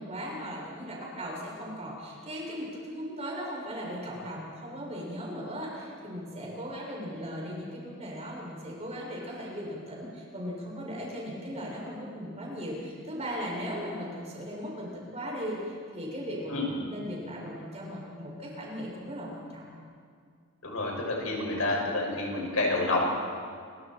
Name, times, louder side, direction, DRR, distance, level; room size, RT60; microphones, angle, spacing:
voice 1, 0.0-19.7, equal, 30° right, -3 dB, 7.2 m, -38 dB
voice 2, 20.6-23.0, left 2 dB, 80° left, -1 dB, 6.8 m, -29 dB
29.0 x 24.5 x 4.7 m, 2.1 s
head